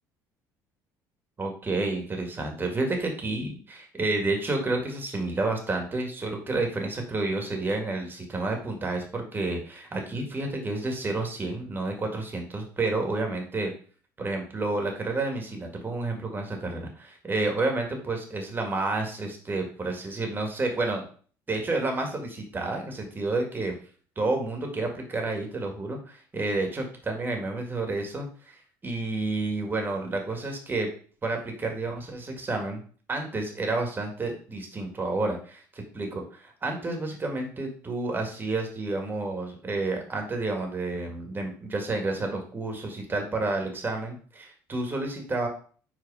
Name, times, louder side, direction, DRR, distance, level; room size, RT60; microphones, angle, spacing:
voice 1, 1.4-13.7 14.2-21.0 21.5-23.7 24.2-30.9 31.2-32.8 33.1-45.5, right 2 dB, 25° right, 3 dB, 2.1 m, -30 dB
4.9 x 4.3 x 4.8 m, 0.43 s
supercardioid pair, 90°, 8 cm